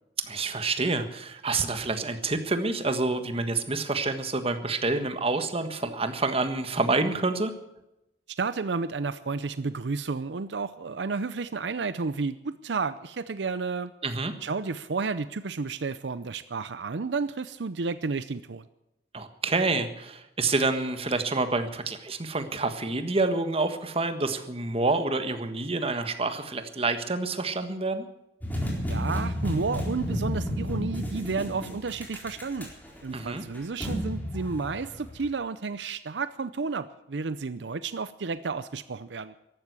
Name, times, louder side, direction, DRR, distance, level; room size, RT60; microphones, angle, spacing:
voice 1, 0.2-7.5 14.0-14.3 19.1-28.0 33.1-33.4, right 3 dB, 35° right, 9 dB, 1.5 m, -28 dB
voice 2, 8.4-13.9 14.4-18.6 28.9-32.7 33.0-39.3, right 4 dB, 80° right, 14 dB, 0.6 m, -31 dB
sound 1, 28.4-35.3, equal, 10° left, 3.9 m, -32 dB
14.5 x 12.0 x 8.2 m, 0.89 s
head